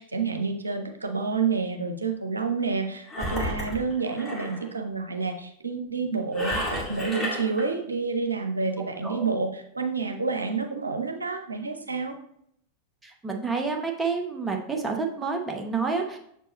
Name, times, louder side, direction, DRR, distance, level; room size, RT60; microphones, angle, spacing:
voice 1, 0.0-12.2, right 4 dB, 80° right, 5 dB, 0.7 m, -29 dB
Engine, 3.1-4.6 6.3-7.6, left 1 dB, 10° left, 2.0 m, -31 dB
voice 2, 13.0-16.2, right 4 dB, 10° right, 2 dB, 0.9 m, -29 dB
6.8 x 4.6 x 3.0 m, 0.70 s
figure-of-eight pair, 90°, 0 cm